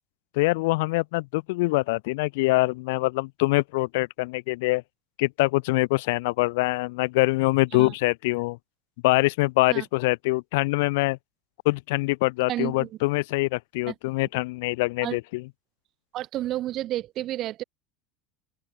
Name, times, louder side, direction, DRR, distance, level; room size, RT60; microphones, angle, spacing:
voice 1, 0.4-4.8 5.2-8.6 9.0-11.2 11.7-15.5, left 23 dB, 70° left, 0.3 m, -24 dB
voice 2, 12.5-13.0 13.9-14.0 15.0-15.2 16.1-17.6, right 14 dB, 50° right, 3.7 m, -31 dB
open air
hypercardioid pair, 85°, 0 cm